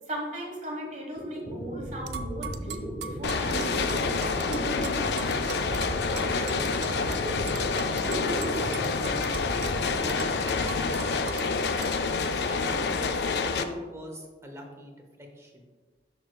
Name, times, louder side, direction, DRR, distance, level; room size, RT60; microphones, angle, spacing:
voice 1, 0.1-4.5, right 1 dB, 40° right, -1 dB, 1.5 m, -37 dB
sound 1, 0.9-1.0 1.2-11.6, equal, 45° left, 1.9 m, -36 dB
sound 2, 2.1-7.2 7.5-11.5 11.8-11.9, right 8 dB, 75° right, 0.4 m, -41 dB
sound 3, 3.2-13.6, left 4 dB, 70° left, 0.4 m, -28 dB
voice 2, 5.9-6.7 7.1-9.7 10.4-11.3 12.0-15.7, left 1 dB, 15° right, 2 dB, 0.8 m, -42 dB
12.0 x 4.4 x 2.3 m, 1.4 s
head